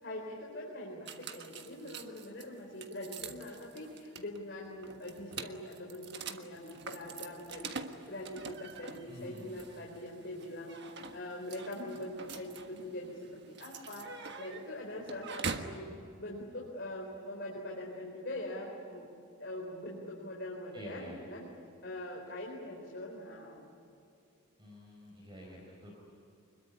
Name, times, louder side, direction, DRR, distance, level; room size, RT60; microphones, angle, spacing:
voice 1, 0.0-15.9 16.2-19.1 19.4-21.5 21.8-23.6, left 1 dB, 50° left, -2 dB, 4.1 m, -43 dB
sound 1, 1.1-15.8, right 5 dB, 50° right, 1.5 m, -45 dB
voice 2, 9.1-9.4 20.7-21.2 24.6-26.0, equal, 20° right, -2 dB, 4.4 m, -48 dB
25.5 x 22.0 x 10.0 m, 2.5 s
head